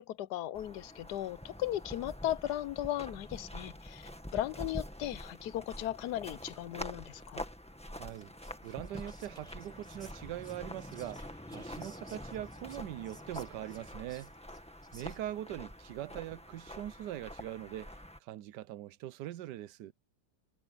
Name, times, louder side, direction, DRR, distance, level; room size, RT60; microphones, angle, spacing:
voice 1, 0.0-7.5, left 13 dB, 75° left, 1.2 m, -37 dB
sound 1, 0.5-18.2, equal, 5° left, 1.6 m, -46 dB
voice 2, 8.0-8.3 8.6-11.2 11.5-14.3 14.9-19.9, right 13 dB, 85° right, 1.3 m, -42 dB
Whispering, 8.1-15.4, right 1 dB, 20° right, 6.5 m, -60 dB
omnidirectional pair, 1.8 m